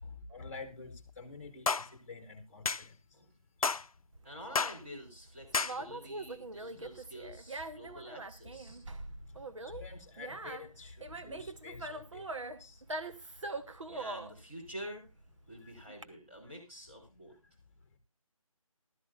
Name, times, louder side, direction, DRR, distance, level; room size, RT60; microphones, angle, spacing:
voice 1, 0.0-3.0 5.9-6.0 6.7-6.8 9.2-12.8 15.6-15.7, left 4 dB, 25° left, 7 dB, 1.6 m, -48 dB
sound 1, 1.7-1.9 2.7-2.8 3.6-3.9 4.6-4.8 5.5-5.8, left 4 dB, 75° left, 0.6 m, -30 dB
Conversation, 4.1-16.0, right 2 dB, 60° right, 1.2 m, -43 dB
voice 2, 4.2-8.8 13.9-15.1 15.5-17.4, equal, 20° right, -4 dB, 3.8 m, -48 dB
15.5 x 12.5 x 2.6 m, 0.25 s
figure-of-eight pair, 175°, 18 cm